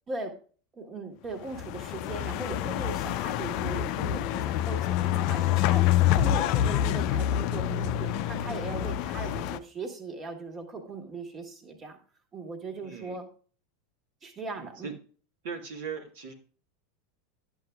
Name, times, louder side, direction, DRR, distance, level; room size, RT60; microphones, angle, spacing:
voice 1, 0.7-12.0 12.3-13.3 14.2-14.9, right 3 dB, 30° right, 4 dB, 1.5 m, -39 dB
sound 1, 1.5-9.6, left 12 dB, 55° left, 0.4 m, -27 dB
voice 2, 12.8-13.2 14.6-14.9 15.4-16.3, right 6 dB, 65° right, 2 dB, 1.2 m, -39 dB
10.5 x 7.5 x 2.3 m, 0.40 s
hypercardioid pair, 90°, 0 cm